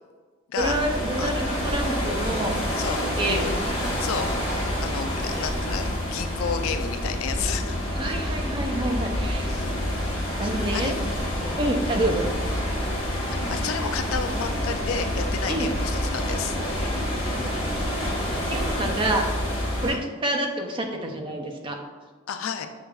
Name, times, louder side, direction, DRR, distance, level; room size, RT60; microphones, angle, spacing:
sound 1, 0.6-19.9, left 1 dB, 25° left, 0.9 m, -28 dB
voice 1, 0.6-2.6 3.2-3.6 7.9-9.5 10.4-10.9 11.6-12.3 15.5-15.7 18.5-19.2 19.8-21.8, right 1 dB, 25° right, 3 dB, 0.4 m, -27 dB
voice 2, 4.0-7.8 9.5-9.7 10.7-11.1 11.4-11.6 13.3-16.6 19.9-20.0 22.3-22.7, left 6 dB, 80° left, 8 dB, 0.4 m, -31 dB
6.5 x 2.3 x 2.3 m, 1.4 s
head